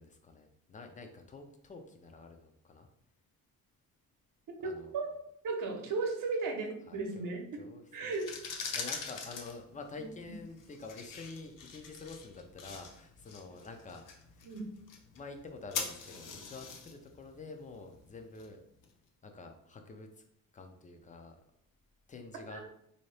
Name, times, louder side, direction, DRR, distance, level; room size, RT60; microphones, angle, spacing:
voice 1, 0.0-2.9 4.6-4.9 6.9-8.1 8.7-14.0 14.3-14.5 15.1-18.6 19.2-20.2 20.5-21.4 22.1-22.6, left 3 dB, 20° left, 5 dB, 0.4 m, -48 dB
voice 2, 4.6-5.1 5.4-7.6 7.9-8.3 10.0-10.1 14.4-14.6 22.5-22.6, right 3 dB, 60° right, 3 dB, 0.8 m, -35 dB
sound 1, 8.0-18.9, left 5 dB, 60° left, 0.7 m, -44 dB
3.6 x 2.7 x 3.2 m, 0.72 s
cardioid pair, 145°, 37 cm